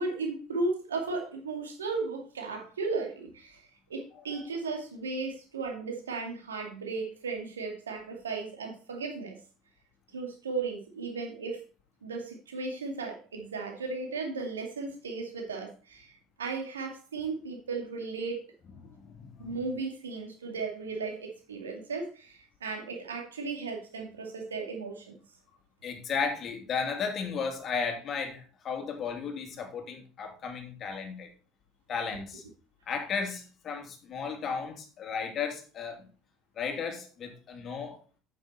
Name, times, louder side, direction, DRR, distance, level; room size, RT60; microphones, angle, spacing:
voice 1, 0.0-3.6 3.9-9.4 10.1-11.6 12.0-18.4 19.4-25.0, right 4 dB, 85° right, 2.3 m, -35 dB
voice 2, 4.1-4.5 18.8-19.6 25.8-31.3 31.9-32.4 32.9-36.1 36.6-38.0, left 5 dB, 45° left, 2.8 m, -34 dB
8.9 x 7.8 x 4.3 m
hypercardioid pair, 65°, 0 cm